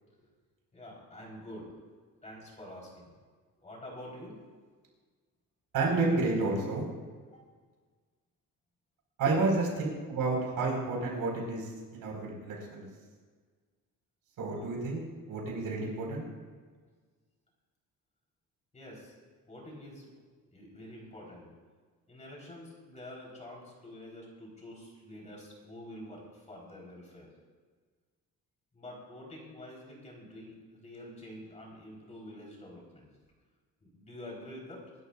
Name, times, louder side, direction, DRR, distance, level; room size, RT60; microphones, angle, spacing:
voice 1, 0.7-1.8 2.2-3.3 3.6-4.4 7.3-7.4 9.2-9.5 18.7-19.1 19.5-20.1 20.4-21.5 22.1-27.3 28.7-33.1 33.8-34.8, left 1 dB, 20° left, -3 dB, 4.0 m, -47 dB
voice 2, 5.7-6.8 9.2-12.9 14.4-15.0 15.3-16.2, right 3 dB, 80° right, -1 dB, 4.9 m, -30 dB
25.5 x 12.5 x 2.5 m, 1.5 s
cardioid pair, 165°, 34 cm